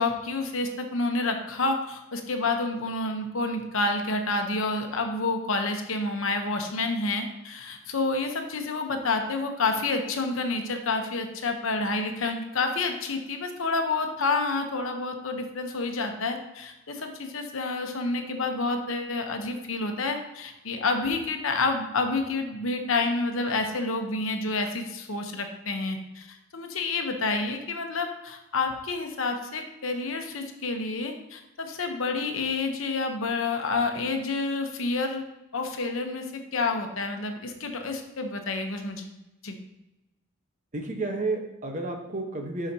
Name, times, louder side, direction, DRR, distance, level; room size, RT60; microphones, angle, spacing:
voice 1, 0.0-35.2 35.5-39.0 39.4-39.6, left 3 dB, 70° left, 5 dB, 0.9 m, -29 dB
voice 2, 40.7-42.7, right 2 dB, 35° right, 2 dB, 1.1 m, -31 dB
11.5 x 5.0 x 2.8 m, 0.98 s
head